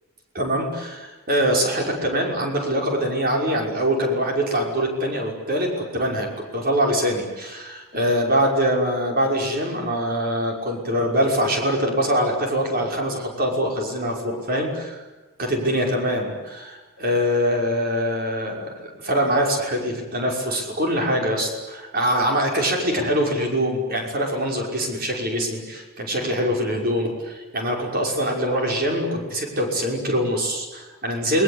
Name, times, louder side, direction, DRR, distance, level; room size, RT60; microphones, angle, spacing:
voice 1, 0.3-15.0 15.4-31.4, equal, 40° right, 1 dB, 5.8 m, -23 dB
29.5 x 21.0 x 8.3 m, 1.2 s
head